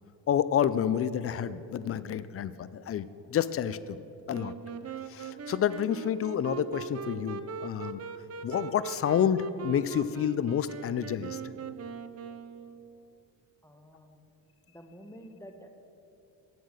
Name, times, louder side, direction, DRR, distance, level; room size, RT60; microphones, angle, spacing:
voice 1, 0.3-4.0 4.3-4.5 5.1-8.0 8.4-11.4, left 9 dB, 30° left, 15 dB, 0.4 m, -29 dB
Wind instrument woodwind instrument, 4.3-13.1, right 7 dB, 30° right, 0.6 m, -40 dB
voice 2, 13.6-14.2 14.7-15.8, equal, 5° left, 5 dB, 1.1 m, -50 dB
8.6 x 7.8 x 6.4 m, 2.9 s
hypercardioid pair, 60°, 50 cm